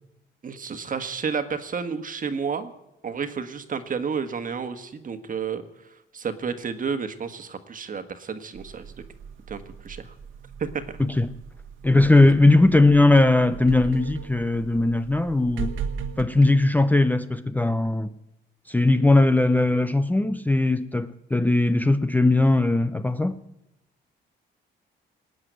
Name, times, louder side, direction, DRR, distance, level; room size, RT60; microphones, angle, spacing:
voice 1, 0.4-2.7 3.0-8.9 9.5-10.1 10.6-10.8, right 6 dB, 45° right, 1.5 m, -31 dB
sound 1, 8.6-16.2, right 6 dB, 80° right, 1.4 m, -38 dB
voice 2, 11.0-11.3 11.8-15.7 16.2-18.1 18.7-23.4, left 2 dB, 10° left, 0.6 m, -19 dB
19.0 x 7.8 x 9.2 m
cardioid pair, 90°, 20 cm